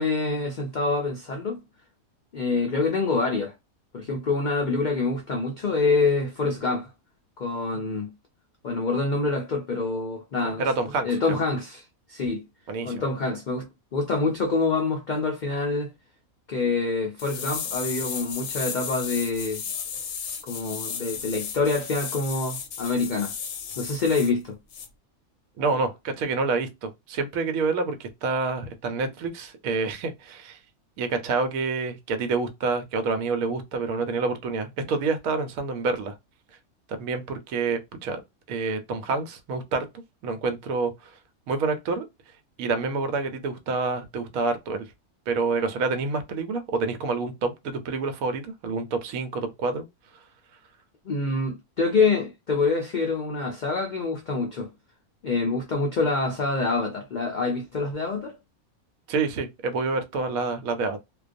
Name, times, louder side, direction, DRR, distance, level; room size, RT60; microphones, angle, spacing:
voice 1, 0.0-1.6 2.3-3.5 3.9-6.9 7.4-8.1 8.6-10.7 11.0-11.8 12.1-12.4 12.8-15.9 16.5-19.6 20.4-23.3 23.8-24.6 51.0-54.7 55.2-58.4, left 3 dB, 90° left, 0.4 m, -26 dB
voice 2, 10.4-11.4 12.7-13.0 25.6-30.6 31.0-36.1 36.9-38.2 38.5-39.9 40.2-41.1 41.5-42.1 42.6-44.9 45.3-49.8 59.1-61.0, right 4 dB, 75° right, 1.0 m, -28 dB
sound 1, 17.2-24.3 24.7-24.9, left 7 dB, 65° left, 0.8 m, -34 dB
2.3 x 2.2 x 2.5 m
omnidirectional pair, 1.5 m